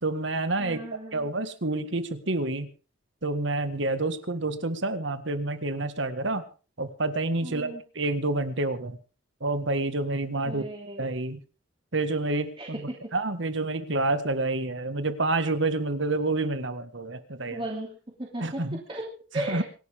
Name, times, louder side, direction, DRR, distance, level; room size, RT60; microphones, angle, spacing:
voice 1, 0.0-0.8 1.1-2.7 3.2-6.4 6.8-9.0 9.4-10.6 11.0-11.4 11.9-12.8 13.1-17.6 18.4-18.8 19.4-19.6, right 2 dB, 65° right, 11 dB, 1.7 m, -28 dB
voice 2, 0.6-1.3 7.4-7.8 10.5-11.0 12.6-13.0 17.5-19.1 19.3-19.6, right 1 dB, 25° right, -1 dB, 2.9 m, -36 dB
27.0 x 11.5 x 3.7 m, 0.36 s
head